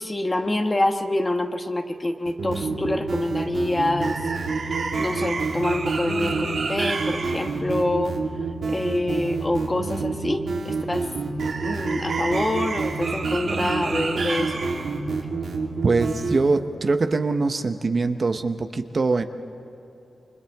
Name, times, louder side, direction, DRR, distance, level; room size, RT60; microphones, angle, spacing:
voice 1, 0.0-4.1 5.0-8.2 8.7-11.1 11.6-14.6, left 1 dB, 20° left, 5 dB, 1.2 m, -26 dB
sound 1, 2.3-16.4, right 4 dB, 80° right, 3.2 m, -27 dB
voice 2, 15.8-19.2, right 3 dB, 45° right, 7 dB, 1.0 m, -23 dB
29.0 x 25.5 x 3.6 m, 2.9 s
wide cardioid pair, 120°, 0 cm